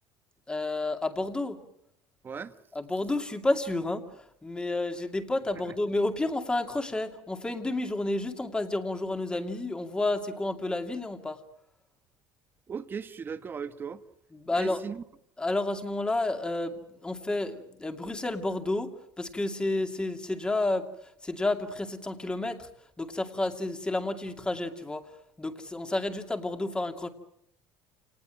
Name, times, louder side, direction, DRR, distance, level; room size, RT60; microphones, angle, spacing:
voice 1, 0.5-1.6 2.7-11.4 14.3-14.8 15.4-22.7 23.0-25.0 25.4-27.1, left 2 dB, 10° left, 6 dB, 2.5 m, -30 dB
voice 2, 12.7-14.0 14.5-15.0, right 6 dB, 25° right, 10 dB, 1.4 m, -37 dB
28.0 x 19.0 x 9.0 m, 0.75 s
cardioid pair, 140°, 8 cm